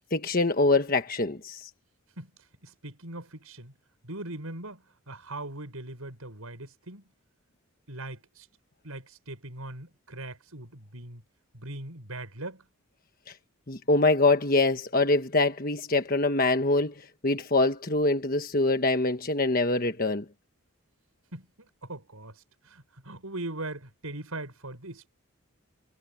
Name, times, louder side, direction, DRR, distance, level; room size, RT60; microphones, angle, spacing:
voice 1, 0.1-1.7 13.7-16.9 17.2-20.2, left 2 dB, 40° left, 1.3 m, -24 dB
voice 2, 2.6-3.7 4.0-7.0 7.9-8.5 8.8-11.2 11.5-12.6 21.3-21.5 21.8-25.1, right 2 dB, 90° right, 7.0 m, -40 dB
head